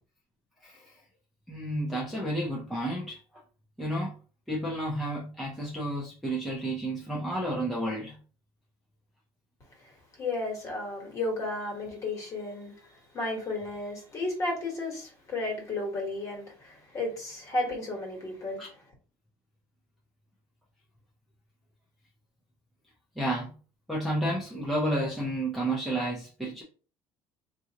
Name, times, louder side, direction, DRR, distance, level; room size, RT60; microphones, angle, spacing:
voice 1, 0.6-1.0 1.5-3.2 3.8-4.1 4.5-8.2 18.6-18.7 23.2-23.5 23.9-26.6, right 1 dB, ahead, 0.6 m, -31 dB
voice 2, 9.8-18.8, left 2 dB, 30° left, 1.3 m, -33 dB
4.0 x 2.5 x 2.8 m
cardioid pair, 170°, 10 cm